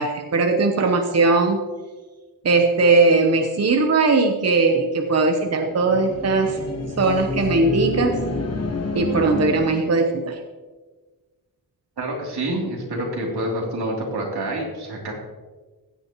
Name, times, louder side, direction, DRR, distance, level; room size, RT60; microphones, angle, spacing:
voice 1, 0.0-1.6 2.4-6.6 7.0-8.1 8.9-10.4, right 3 dB, 40° right, 4 dB, 0.8 m, -19 dB
sound 1, 5.5-10.1, left 3 dB, 40° left, 1.2 m, -29 dB
voice 2, 12.0-15.2, right 1 dB, 85° right, -2 dB, 3.0 m, -27 dB
16.0 x 9.4 x 3.0 m, 1.3 s
wide cardioid pair, 165°, 38 cm